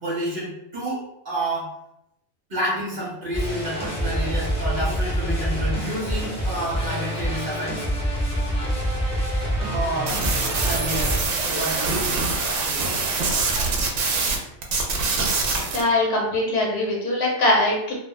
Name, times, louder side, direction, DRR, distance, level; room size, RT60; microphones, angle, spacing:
voice 1, 0.0-1.7 2.5-7.8 9.7-10.2 10.6-12.3 12.6-13.0 13.3-13.6, right 1 dB, 45° right, -6 dB, 1.0 m, -30 dB
sound 1, 3.3-11.2, equal, 10° left, 0.4 m, -26 dB
sound 2, 10.1-14.4 14.6-15.8, right 3 dB, 70° right, 0.8 m, -24 dB
voice 2, 15.7-17.9, left 2 dB, 65° left, -1 dB, 1.0 m, -21 dB
2.4 x 2.0 x 3.2 m, 0.80 s
omnidirectional pair, 1.4 m